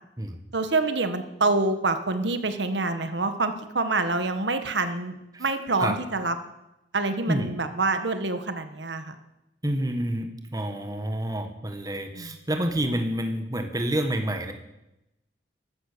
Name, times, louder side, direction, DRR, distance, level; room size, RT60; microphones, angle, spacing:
voice 1, 0.5-6.3 6.9-9.1 12.1-12.3, right 3 dB, 80° right, 9 dB, 1.4 m, -26 dB
voice 2, 9.6-14.5, right 1 dB, 20° right, 5 dB, 1.5 m, -28 dB
14.5 x 12.5 x 6.8 m, 0.91 s
head